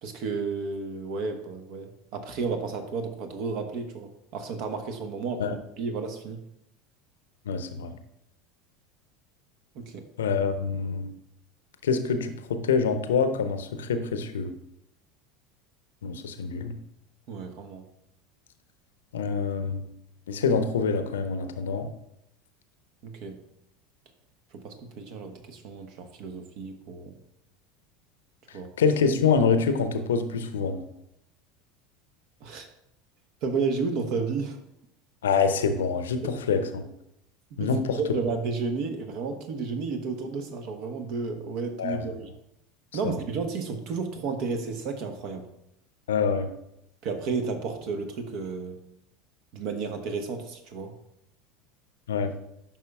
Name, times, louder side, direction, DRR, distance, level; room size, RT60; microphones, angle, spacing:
voice 1, 0.0-6.4 9.7-10.0 17.3-17.8 23.0-23.4 24.5-27.1 28.5-28.7 32.4-32.7 33.4-34.6 37.6-37.7 38.0-42.3 42.9-45.5 47.0-48.8 49.5-50.9, right 4 dB, 50° right, 6 dB, 1.0 m, -32 dB
voice 2, 7.5-8.0 10.2-11.1 11.8-14.5 16.0-16.7 19.1-19.8 20.3-21.9 28.8-30.8 35.2-36.8 37.6-38.0 41.8-42.0 43.0-43.2 46.1-46.5 52.1-52.3, left 5 dB, 70° left, 9 dB, 0.7 m, -26 dB
10.5 x 5.7 x 2.3 m, 0.80 s
figure-of-eight pair, 75°, 0 cm